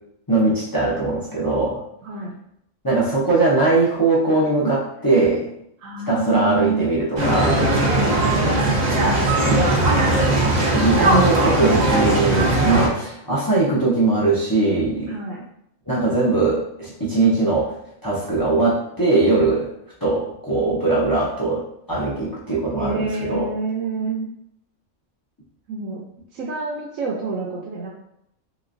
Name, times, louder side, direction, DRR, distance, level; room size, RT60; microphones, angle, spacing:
voice 1, 0.3-1.8 2.8-5.5 6.1-7.6 10.0-10.3 10.7-15.1 15.9-17.8 18.0-19.7 20.0-23.5, right 3 dB, 30° left, -7 dB, 0.4 m, -20 dB
voice 2, 2.0-2.3 5.8-6.9 7.7-9.3 15.1-15.4 22.8-24.3 25.7-26.0 26.3-27.9, right 3 dB, 75° right, -3 dB, 0.9 m, -28 dB
sound 1, 7.2-12.9, right 2 dB, 45° right, 0.6 m, -18 dB
3.1 x 3.0 x 2.5 m, 0.75 s
omnidirectional pair, 1.4 m